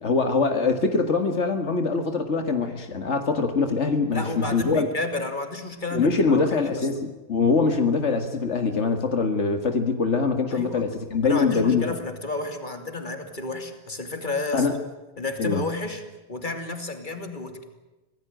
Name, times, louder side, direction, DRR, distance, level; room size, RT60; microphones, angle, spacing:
voice 1, 0.0-4.9 5.9-11.8 14.5-14.8 15.4-15.6, left 4 dB, 80° left, 6 dB, 2.1 m, -23 dB
voice 2, 4.1-6.9 10.5-10.9 11.2-14.7 15.2-16.0 16.3-17.6, left 3 dB, 45° left, 6 dB, 3.1 m, -31 dB
25.5 x 18.0 x 9.1 m, 1.1 s
omnidirectional pair, 1.2 m